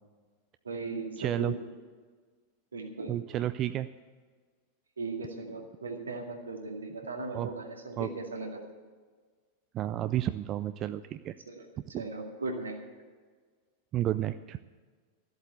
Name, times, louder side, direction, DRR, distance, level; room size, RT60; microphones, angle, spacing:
voice 1, 0.6-1.7 2.7-3.1 5.0-8.6 11.5-11.6 11.9-12.8, right 3 dB, 75° right, 2 dB, 2.1 m, -37 dB
voice 2, 1.2-1.6 3.1-3.9 7.3-7.5 8.0-8.1 9.7-11.3 11.9-12.1 13.9-14.6, right 12 dB, 35° right, 12 dB, 0.4 m, -31 dB
14.0 x 8.0 x 8.1 m, 1.5 s
figure-of-eight pair, 90°, 0 cm